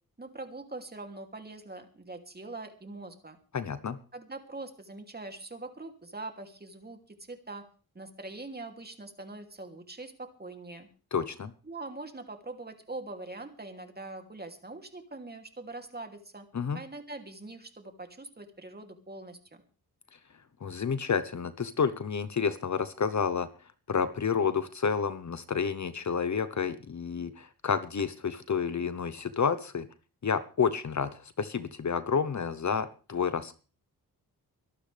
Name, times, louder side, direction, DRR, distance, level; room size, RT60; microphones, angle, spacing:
voice 1, 0.2-3.4 4.1-7.7 7.9-10.9 11.6-16.5 16.7-19.6, right 2 dB, 25° right, 5 dB, 2.9 m, -43 dB
voice 2, 3.5-4.0 11.1-11.5 16.5-16.8 20.6-23.5 23.9-29.8 30.2-33.5, left 6 dB, 45° left, 12 dB, 1.0 m, -30 dB
23.5 x 12.0 x 3.5 m, 0.37 s
cardioid pair, 90°, 39 cm